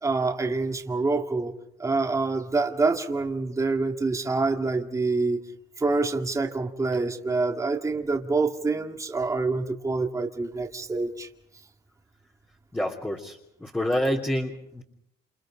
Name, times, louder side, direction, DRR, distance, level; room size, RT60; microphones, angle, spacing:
voice 1, 0.0-1.5 1.8-5.4 5.8-11.3, right 3 dB, 20° right, 4 dB, 2.1 m, -26 dB
voice 2, 12.7-14.8, equal, 10° left, -2 dB, 3.1 m, -28 dB
29.0 x 28.0 x 5.1 m, 0.74 s
cardioid pair, 110°, 17 cm